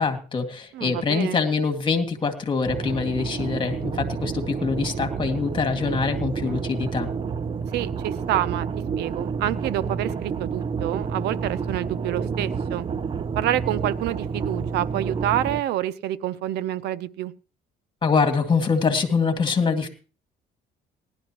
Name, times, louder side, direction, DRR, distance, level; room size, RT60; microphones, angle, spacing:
voice 1, 0.0-7.1 18.0-19.9, left 5 dB, 30° left, 7 dB, 2.0 m, -24 dB
voice 2, 0.7-1.4 7.7-8.7 9.0-12.9 13.4-17.3, right 13 dB, 80° right, 18 dB, 0.6 m, -27 dB
sound 1, 2.6-15.6, right 6 dB, 30° right, 0.5 m, -29 dB
19.0 x 11.5 x 2.9 m, 0.35 s
cardioid pair, 110°, 17 cm